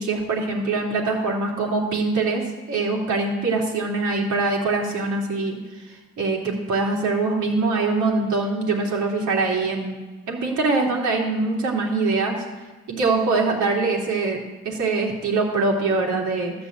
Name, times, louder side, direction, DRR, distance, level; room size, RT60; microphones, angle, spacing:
voice 1, 0.0-2.4 2.7-5.6 6.2-10.0 10.3-12.3 12.9-14.4 14.6-16.5, right 3 dB, 75° right, -2 dB, 3.1 m, -23 dB
13.5 x 5.4 x 8.7 m, 1.2 s
cardioid pair, 90°, 30 cm